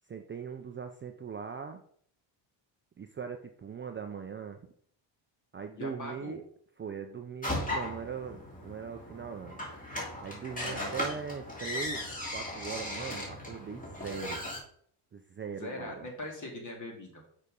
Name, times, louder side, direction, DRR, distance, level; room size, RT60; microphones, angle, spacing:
voice 1, 0.1-1.8 3.0-4.6 5.5-6.4 6.8-9.6 10.2-12.1 12.3-14.4 15.1-16.1, right 6 dB, 25° right, 5 dB, 0.5 m, -40 dB
voice 2, 5.8-6.4 10.6-10.9 15.5-17.4, left 1 dB, 35° left, 1 dB, 2.7 m, -41 dB
sound 1, 7.4-14.6, left 1 dB, 15° left, 2.5 m, -37 dB
6.5 x 5.1 x 5.3 m, 0.62 s
cardioid pair, 120°, 49 cm